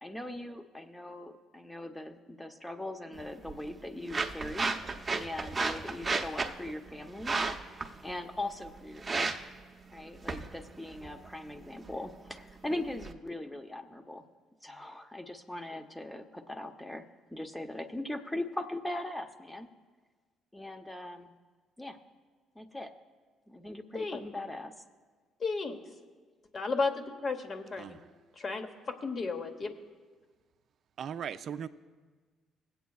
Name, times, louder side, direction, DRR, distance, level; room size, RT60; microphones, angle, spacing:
voice 1, 0.0-4.7 5.1-9.5 9.9-14.2 14.6-17.0 17.3-19.7 20.5-21.3 21.8-22.0 22.6-22.9 23.5-24.7, left 1 dB, 10° left, 6 dB, 0.8 m, -40 dB
sound 1, 3.1-13.1, right 3 dB, 30° right, 0.7 m, -36 dB
voice 2, 25.4-25.8 26.5-27.3 27.7-28.0 28.4-29.7, left 4 dB, 45° left, 6 dB, 1.0 m, -33 dB
voice 3, 31.0-31.7, right 8 dB, 60° right, 10 dB, 0.4 m, -38 dB
21.0 x 8.2 x 2.3 m, 1.5 s
supercardioid pair, 65°, 0 cm